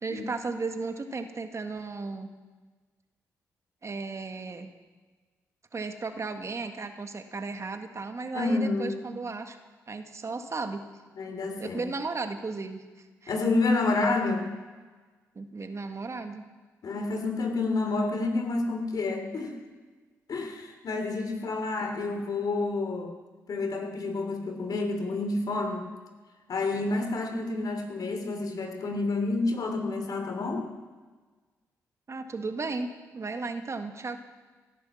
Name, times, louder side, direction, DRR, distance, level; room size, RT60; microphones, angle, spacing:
voice 1, 0.0-2.3 3.8-4.7 5.7-9.6 9.9-10.8 11.6-13.3 15.4-16.4 32.1-34.2, right 3 dB, 40° right, 6 dB, 1.7 m, -35 dB
voice 2, 8.3-9.1 11.1-11.8 13.3-14.4 16.8-19.6 20.3-23.1 23.5-25.8 26.5-30.7, left 3 dB, 60° left, 4 dB, 3.2 m, -29 dB
17.5 x 10.5 x 7.3 m, 1.4 s
supercardioid pair, 45°, 7 cm